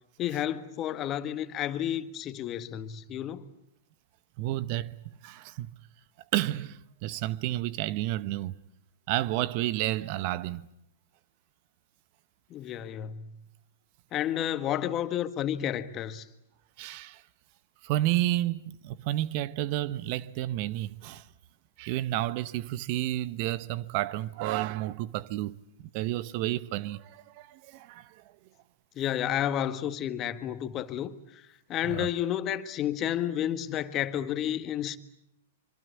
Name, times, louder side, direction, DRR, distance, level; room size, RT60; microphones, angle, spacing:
voice 1, 0.2-3.5 12.5-13.4 14.1-16.2 28.9-31.4 31.7-35.0, left 11 dB, 30° left, 1.6 m, -31 dB
voice 2, 4.4-5.7 6.3-8.6 9.1-10.7 16.8-17.2 17.8-21.2 21.8-25.6 25.9-28.2 31.9-32.1, right 15 dB, 50° right, 0.9 m, -31 dB
25.5 x 25.0 x 8.5 m
hypercardioid pair, 115°, 0 cm